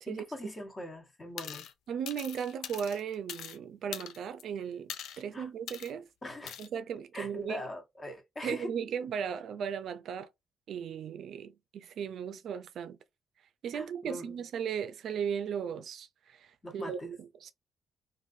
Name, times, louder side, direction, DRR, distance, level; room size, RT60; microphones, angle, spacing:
voice 1, 0.1-1.7 5.3-5.5 6.2-6.6 7.1-8.7 13.7-14.4 16.6-17.2, left 1 dB, 25° left, 1.1 m, -42 dB
sound 1, 1.4-1.7 2.1-3.6 3.9-4.4 4.9-5.2 5.7-5.9 6.5-6.7, left 9 dB, 80° left, 0.4 m, -42 dB
voice 2, 1.9-6.1 6.6-7.6 8.4-10.3 10.7-13.0 13.6-17.2 17.4-17.5, right 7 dB, 70° right, 0.5 m, -36 dB
3.1 x 2.6 x 2.6 m
cardioid pair, 90°, 0 cm